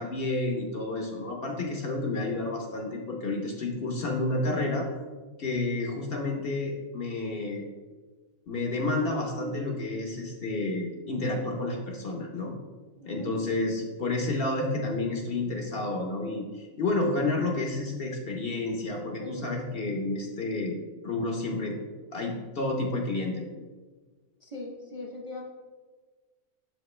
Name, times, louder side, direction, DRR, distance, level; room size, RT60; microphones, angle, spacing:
voice 1, 0.0-4.9 5.4-7.6 8.5-12.5 13.1-20.8 21.0-21.7 22.1-23.5, left 2 dB, 50° left, 2 dB, 0.9 m, -30 dB
voice 2, 13.0-13.4 19.2-19.6 24.4-25.4, left 2 dB, 30° right, -2 dB, 0.6 m, -40 dB
6.7 x 5.0 x 3.2 m, 1.4 s
omnidirectional pair, 1.4 m